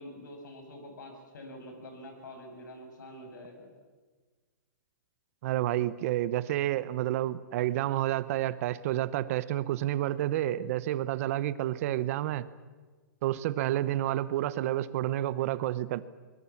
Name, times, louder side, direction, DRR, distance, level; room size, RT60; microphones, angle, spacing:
voice 1, 0.0-3.7, left 1 dB, 70° left, 4 dB, 7.5 m, -46 dB
voice 2, 5.4-12.5 13.2-16.1, right 14 dB, 50° right, 16 dB, 1.0 m, -29 dB
23.5 x 22.0 x 7.3 m, 1.4 s
hypercardioid pair, 140°, 10 cm